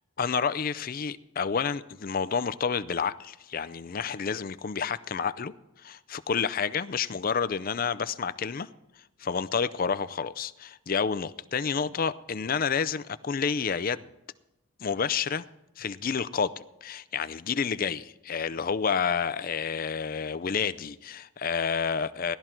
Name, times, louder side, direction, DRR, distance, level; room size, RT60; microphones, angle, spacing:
voice 1, 0.2-5.5 5.8-8.7 9.2-14.1 14.8-15.4 15.8-22.4, left 6 dB, 40° left, 0.4 m, -29 dB
18.0 x 12.5 x 4.4 m
head